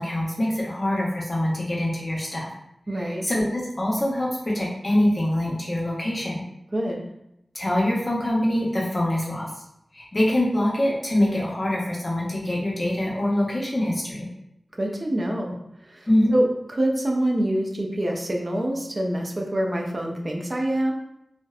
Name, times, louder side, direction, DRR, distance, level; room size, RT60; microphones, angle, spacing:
voice 1, 0.0-2.5 3.0-4.3 4.5-6.4 7.5-9.5 9.9-14.3 16.1-16.3, left 1 dB, 40° left, -4 dB, 0.7 m, -24 dB
voice 2, 2.9-3.3 6.7-7.0 14.8-15.6 15.8-20.9, right 1 dB, 40° right, 0 dB, 0.4 m, -26 dB
2.7 x 2.0 x 2.3 m, 0.81 s
wide cardioid pair, 55°, 0 cm